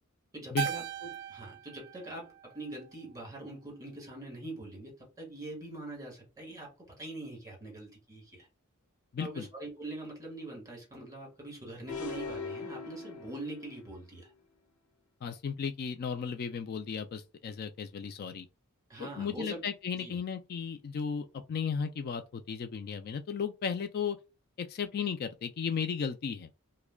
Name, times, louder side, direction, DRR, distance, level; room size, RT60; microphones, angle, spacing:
voice 1, 0.3-8.5 9.2-14.3 18.9-19.6 19.9-20.2, right 2 dB, 15° right, 1.7 m, -43 dB
Keyboard (musical), 0.6-3.1, right 11 dB, 50° right, 0.3 m, -39 dB
voice 2, 9.1-9.5 15.2-18.5 19.0-24.2 24.6-26.5, left 6 dB, 45° left, 0.3 m, -35 dB
sound 1, 11.9-13.9, left 4 dB, 90° left, 0.7 m, -40 dB
4.7 x 2.1 x 2.2 m
head